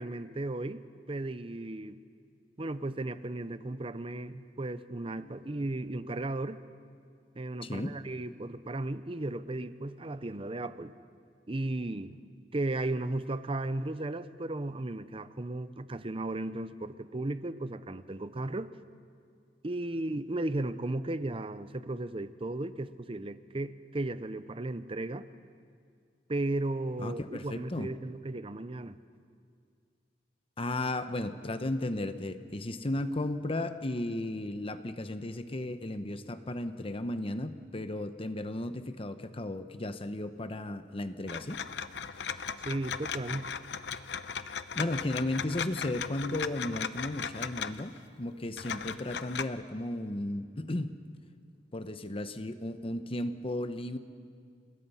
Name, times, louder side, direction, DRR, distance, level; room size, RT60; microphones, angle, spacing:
voice 1, 0.0-2.0 2.6-6.6 7.3-10.9 11.5-12.2 12.5-18.7 19.6-25.3 26.3-28.9 42.6-43.5, right 2 dB, 30° right, 13 dB, 0.7 m, -35 dB
voice 2, 7.6-7.9 27.0-27.9 30.6-41.6 42.0-42.3 44.7-51.0 51.7-54.0, left 1 dB, 35° left, 10 dB, 0.9 m, -35 dB
sound 1, 41.3-48.0 48.6-49.4, left 6 dB, 80° left, 0.8 m, -37 dB
29.5 x 20.5 x 5.6 m, 2.2 s
head